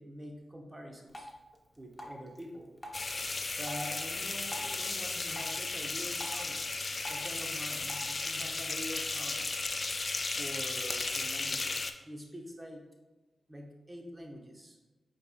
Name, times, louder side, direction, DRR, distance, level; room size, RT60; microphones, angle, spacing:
voice 1, 0.0-1.3 1.8-2.7 3.5-9.6 10.4-12.8 13.5-14.8, equal, 25° right, 1 dB, 1.0 m, -45 dB
Drip, 1.1-8.1, equal, 15° left, 1.0 m, -49 dB
sound 1, 2.9-11.9, left 3 dB, 45° left, 0.4 m, -35 dB
5.1 x 4.2 x 2.3 m, 1.1 s
supercardioid pair, 45°, 0 cm